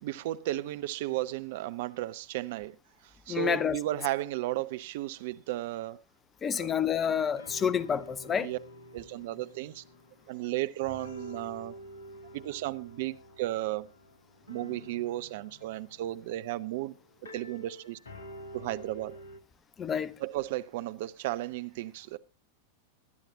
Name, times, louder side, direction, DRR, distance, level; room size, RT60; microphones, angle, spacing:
voice 1, 0.0-2.8 3.0-6.0 6.6-6.8 8.3-8.6 8.9-9.8 10.3-11.8 12.3-13.9 14.5-16.9 17.3-18.0 18.5-19.2 20.2-22.2, right 15 dB, 50° right, 0.6 m, -34 dB
voice 2, 3.3-3.8 6.4-8.5 19.8-20.1, left 7 dB, 20° left, 0.7 m, -29 dB
sound 1, 7.4-10.5 10.8-19.4, equal, 70° left, 1.4 m, -49 dB
22.0 x 10.5 x 2.7 m
figure-of-eight pair, 90°, 0 cm